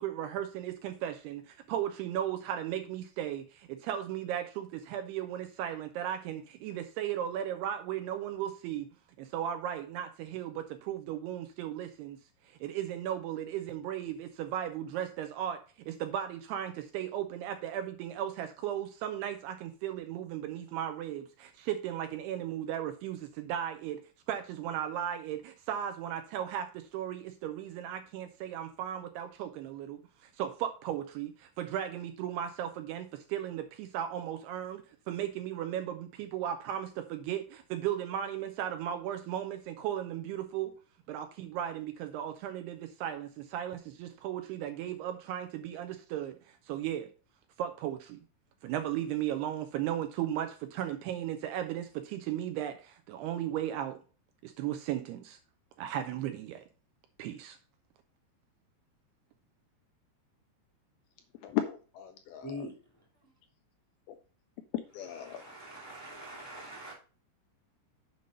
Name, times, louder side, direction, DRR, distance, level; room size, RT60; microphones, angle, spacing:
voice 1, 0.0-8.9 9.2-24.0 24.3-40.8 41.1-47.1 47.6-48.2 48.6-54.0 54.4-55.4 55.8-56.6 57.2-57.6, right 10 dB, 80° right, 2.5 m, -36 dB
voice 2, 61.4-62.7 64.9-65.5, left 12 dB, 80° left, 2.2 m, -36 dB
voice 3, 62.4-62.7 65.3-66.9, equal, 15° left, 0.5 m, -43 dB
7.7 x 5.5 x 5.2 m
omnidirectional pair, 5.0 m